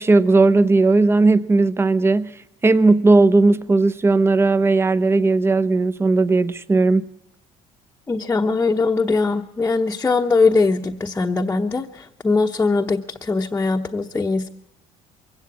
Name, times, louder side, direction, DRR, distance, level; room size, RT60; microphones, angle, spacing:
voice 1, 0.0-2.3 2.6-7.1, right 3 dB, 15° right, 0.8 m, -16 dB
voice 2, 8.1-14.5, left 3 dB, 15° left, 1.0 m, -21 dB
23.0 x 16.5 x 8.5 m
cardioid pair, 135°, 14 cm